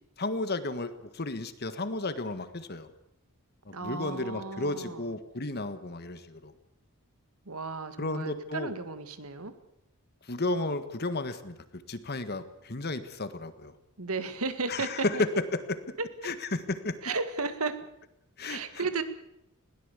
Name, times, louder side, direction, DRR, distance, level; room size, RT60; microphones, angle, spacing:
voice 1, 0.2-2.9 3.6-6.5 8.0-8.7 10.2-13.7 14.7-15.3 15.7-15.8 16.2-17.0 18.4-18.8, left 2 dB, 45° left, 11 dB, 1.6 m, -33 dB
voice 2, 3.7-5.1 7.5-9.5 14.0-15.2 17.0-17.8 18.4-19.0, right 4 dB, 75° right, 10 dB, 2.0 m, -34 dB
21.0 x 17.0 x 8.3 m, 0.82 s
head